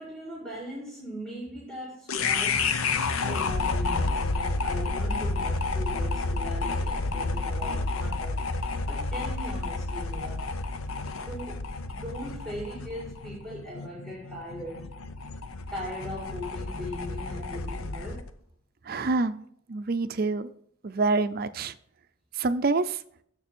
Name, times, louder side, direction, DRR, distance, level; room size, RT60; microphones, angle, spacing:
voice 1, 0.0-2.8 3.1-8.4 8.9-10.5 11.1-14.9 15.7-18.3, equal, 5° left, 1.9 m, -39 dB
sound 1, 2.1-18.3, left 3 dB, 85° left, 0.7 m, -30 dB
voice 2, 18.9-19.4 19.7-20.5 20.8-21.7 22.4-23.0, right 3 dB, 45° right, 0.5 m, -26 dB
6.9 x 6.7 x 4.4 m
head